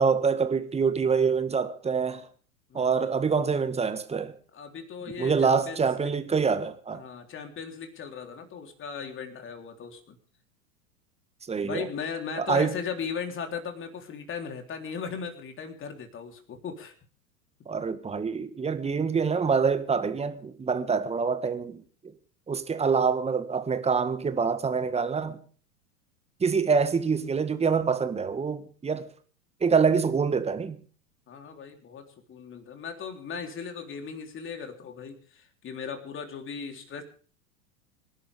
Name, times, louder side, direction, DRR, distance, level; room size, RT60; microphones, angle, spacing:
voice 1, 0.0-2.3 2.7-4.3 5.2-7.0 11.5-11.9 12.4-12.7 17.6-22.1 22.5-25.4 26.4-29.1 29.6-30.8, right 5 dB, 15° right, 1.7 m, -26 dB
voice 2, 2.7-3.1 4.5-6.1 6.9-10.2 11.6-16.9 31.3-37.0, left 6 dB, 25° left, 3.7 m, -37 dB
26.0 x 11.5 x 3.6 m
figure-of-eight pair, 90°, 45 cm